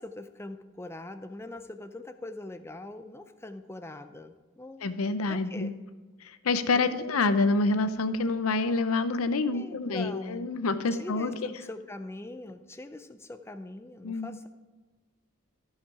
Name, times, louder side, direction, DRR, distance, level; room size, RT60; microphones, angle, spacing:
voice 1, 0.0-4.9 5.3-5.7 6.7-7.0 9.5-10.5 10.9-14.5, left 2 dB, 10° left, 9 dB, 0.4 m, -42 dB
voice 2, 4.8-5.7 6.2-11.5 14.0-14.3, left 3 dB, 85° left, 11 dB, 0.6 m, -27 dB
14.0 x 5.7 x 4.8 m, 1.3 s
head